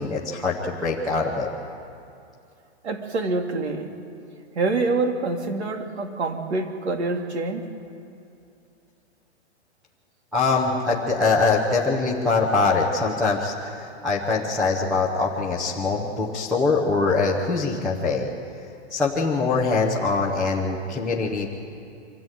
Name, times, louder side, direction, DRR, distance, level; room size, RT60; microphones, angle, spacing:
voice 1, 0.0-1.5 10.3-18.3 18.9-21.5, left 3 dB, ahead, -4 dB, 0.6 m, -23 dB
voice 2, 2.8-3.9 4.5-7.6, right 3 dB, 70° right, 4 dB, 2.6 m, -26 dB
25.0 x 14.0 x 9.2 m, 2.5 s
hypercardioid pair, 180°, 34 cm